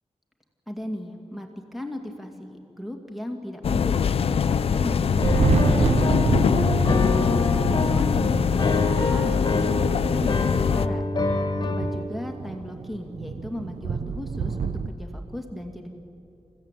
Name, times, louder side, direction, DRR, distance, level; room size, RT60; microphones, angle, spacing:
voice 1, 0.7-7.0 7.7-11.0 11.6-15.9, left 1 dB, ahead, 3 dB, 2.2 m, -36 dB
sound 1, 3.6-10.9, left 7 dB, 70° left, 0.5 m, -23 dB
Thunder, 5.1-14.9, right 5 dB, 85° right, 0.8 m, -29 dB
Piano, 5.2-12.0, left 3 dB, 40° left, 1.6 m, -27 dB
28.0 x 16.0 x 9.0 m, 2.7 s
wide cardioid pair, 160°, 10 cm